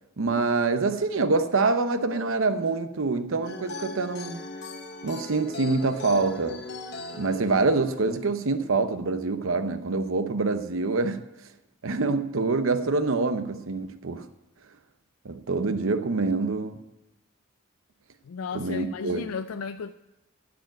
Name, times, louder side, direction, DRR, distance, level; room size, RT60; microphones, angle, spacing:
voice 1, 0.2-4.4 5.0-6.6 7.2-11.2 11.8-14.3 15.2-16.8 18.5-19.2, right 3 dB, 70° right, 0.7 m, -25 dB
sound 1, 3.4-8.5, left 3 dB, 50° left, 1.1 m, -40 dB
voice 2, 18.2-19.9, left 5 dB, 85° left, 0.4 m, -34 dB
13.5 x 5.1 x 9.0 m
head